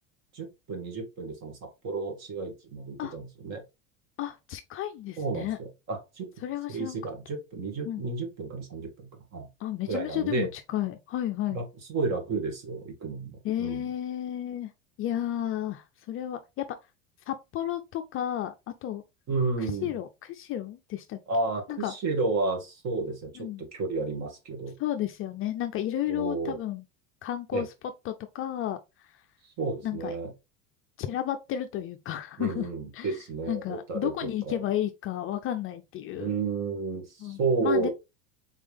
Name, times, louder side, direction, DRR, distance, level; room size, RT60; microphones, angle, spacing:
voice 1, 0.3-3.6 5.2-6.3 6.7-9.5 9.9-10.5 11.5-11.6 11.9-13.3 13.6-13.9 19.3-19.9 21.3-24.8 26.1-26.6 27.5-27.6 29.4-30.3 32.4-34.6 36.2-37.9, right 3 dB, 40° right, 1.9 m, -32 dB
voice 2, 4.2-5.6 6.4-7.0 7.9-8.0 9.6-11.6 13.4-14.7 15.0-16.6 17.3-18.5 18.8-19.0 19.6-21.2 21.7-21.9 23.4-23.6 24.8-26.8 27.2-27.7 28.1-29.2 29.8-30.2 31.0-32.7 32.9-33.2 33.5-36.3 37.2-37.9, left 12 dB, 35° left, 0.4 m, -32 dB
4.2 x 3.6 x 3.3 m
supercardioid pair, 130°, 39 cm